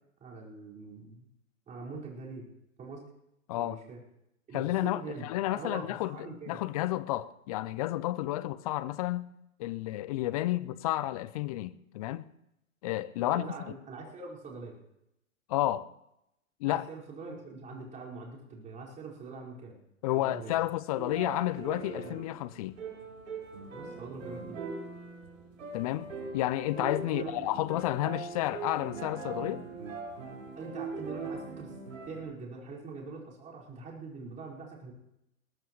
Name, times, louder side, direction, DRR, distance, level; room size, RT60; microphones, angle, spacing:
voice 1, 0.2-1.3 1.7-2.5 2.8-3.1 3.5-4.0 4.5-6.6 13.2-14.7 16.7-19.8 20.1-20.6 22.0-22.2 23.7-24.6 27.1-27.4 30.5-31.7 32.1-34.9, right 4 dB, 20° right, 5.1 m, -43 dB
voice 2, 4.5-9.2 9.6-12.3 12.8-13.5 15.5-15.9 16.6-16.9 20.0-22.8 25.7-26.1 26.3-29.7, left 15 dB, 30° left, 0.5 m, -31 dB
sound 1, 21.0-32.2, right 4 dB, 65° right, 4.8 m, -41 dB
21.0 x 19.0 x 3.1 m
hypercardioid pair, 120°, 41 cm